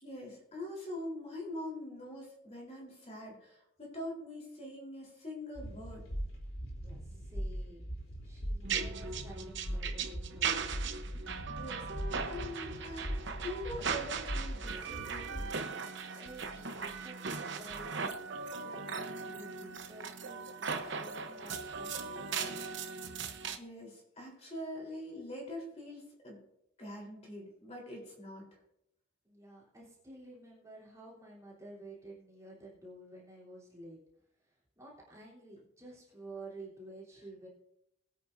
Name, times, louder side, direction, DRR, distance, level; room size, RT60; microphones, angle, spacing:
voice 1, 0.0-6.0 11.5-11.9 12.3-15.4 23.0-23.2 23.6-26.4 26.8-28.5, left 1 dB, 30° left, -2 dB, 3.8 m, -44 dB
sound 1, 5.6-15.4, equal, 75° left, 3.5 m, -41 dB
voice 2, 6.8-7.9 8.2-10.8 16.1-22.6 29.2-34.0 34.4-37.5, right 1 dB, 15° right, -6 dB, 3.4 m, -52 dB
sound 2, 8.6-23.6, right 5 dB, 55° right, 0.9 m, -38 dB
21.0 x 8.9 x 2.7 m, 0.80 s
head